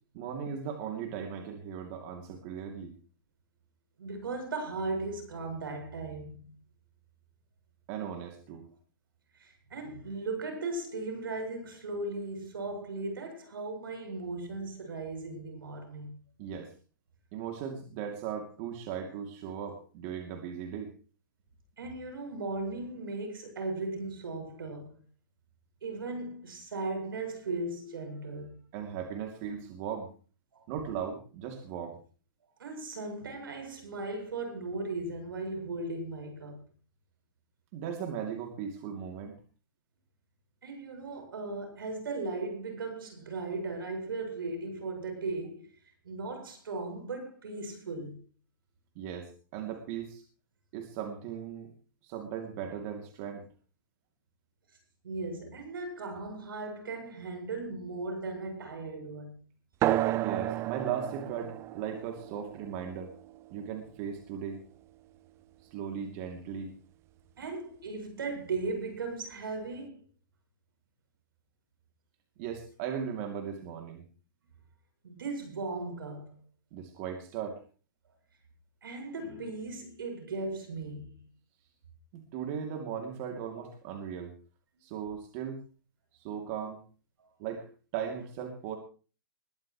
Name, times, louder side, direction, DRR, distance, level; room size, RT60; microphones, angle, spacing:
voice 1, 0.1-2.9 7.9-8.6 16.4-16.7 17.3-20.9 28.7-30.1 30.7-32.0 37.7-39.4 48.9-50.2 50.7-51.7 52.0-53.4 60.1-63.1 63.5-64.6 65.7-66.7 72.4-74.0 76.7-77.6 82.1-84.3 84.8-85.6 86.1-86.8 87.4-87.7 87.9-88.8, right 8 dB, 40° right, 2.7 m, -37 dB
voice 2, 4.0-6.5 9.3-16.1 21.8-25.0 25.8-28.6 30.5-30.7 32.6-36.6 40.6-45.8 46.0-48.2 55.0-59.4 67.4-70.0 75.0-76.4 78.8-81.2 83.6-83.7 87.2-87.3, right 3 dB, 80° right, 7.7 m, -37 dB
sound 1, 59.8-64.8, right 14 dB, 25° right, 0.5 m, -33 dB
21.5 x 12.5 x 3.2 m
hypercardioid pair, 145°, 12 cm